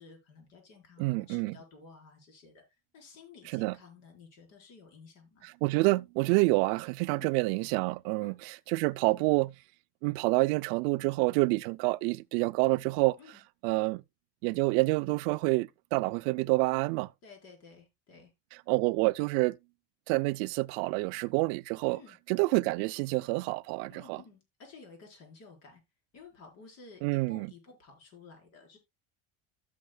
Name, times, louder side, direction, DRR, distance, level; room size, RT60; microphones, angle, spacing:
voice 1, 0.0-2.6 2.9-5.5 7.1-7.3 8.2-8.4 11.0-11.2 13.2-13.4 17.2-18.3 21.9-22.2 23.9-25.8 26.1-28.8, left 4 dB, 55° left, 4.3 m, -53 dB
voice 2, 1.0-1.6 3.5-3.7 5.4-9.5 10.0-13.2 13.6-14.0 14.4-17.1 18.7-19.6 20.1-22.0 22.3-24.2 27.0-27.5, right 24 dB, 75° right, 0.5 m, -28 dB
15.0 x 6.5 x 2.2 m
cardioid pair, 155°, 31 cm